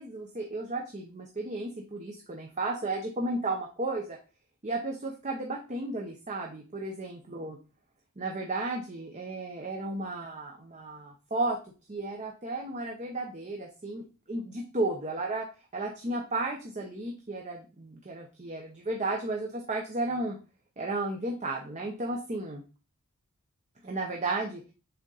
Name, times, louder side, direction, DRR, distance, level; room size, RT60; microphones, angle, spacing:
voice 1, 0.0-4.2 4.6-7.6 8.2-11.6 11.9-15.5 15.7-20.4 20.8-22.6 23.8-24.6, right 2 dB, 35° right, 1 dB, 0.8 m, -33 dB
7.0 x 3.7 x 4.0 m, 0.33 s
head